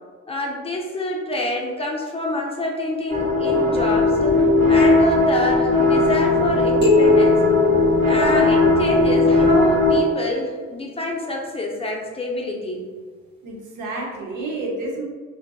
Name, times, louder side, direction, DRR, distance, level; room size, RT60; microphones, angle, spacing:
voice 1, 0.3-4.3 4.7-7.4 8.1-12.8, left 2 dB, 20° left, -1 dB, 0.4 m, -27 dB
sound 1, 3.1-10.0, left 2 dB, 25° right, 0.8 m, -17 dB
sound 2, 6.8-9.2, left 3 dB, 70° right, 1.2 m, -21 dB
voice 2, 13.4-15.0, right 2 dB, 85° right, 0 dB, 0.6 m, -29 dB
2.5 x 2.3 x 2.2 m, 1.5 s
cardioid pair, 90°, 30 cm